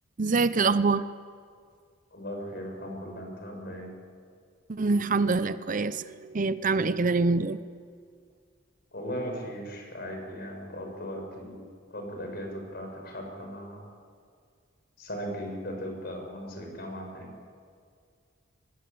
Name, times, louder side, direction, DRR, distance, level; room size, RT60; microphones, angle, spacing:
voice 1, 0.2-1.1 4.7-7.6, right 3 dB, 40° right, 14 dB, 0.6 m, -25 dB
voice 2, 2.1-3.9 8.9-11.6 11.9-13.8 15.0-17.3, equal, 50° left, 2 dB, 6.6 m, -38 dB
25.5 x 20.5 x 8.5 m, 2.1 s
head